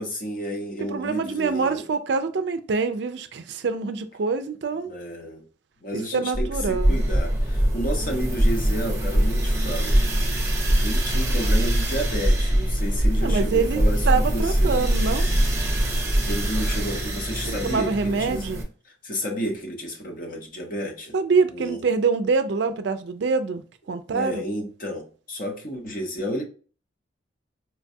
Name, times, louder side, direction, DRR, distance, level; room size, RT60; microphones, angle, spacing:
voice 1, 0.0-1.9 4.8-5.4 5.8-10.0 10.8-14.8 16.2-18.5 19.0-21.1 21.5-21.8 24.1-26.4, equal, 45° left, 0.9 m, -31 dB
voice 2, 0.8-4.9 5.9-7.0 13.2-15.3 17.4-18.6 21.1-23.6 23.9-24.4, right 4 dB, 60° right, 0.4 m, -25 dB
sound 1, 6.3-16.8, equal, 20° left, 0.7 m, -23 dB
sound 2, 6.7-18.6, right 1 dB, 15° right, 0.7 m, -30 dB
4.5 x 2.3 x 2.6 m
head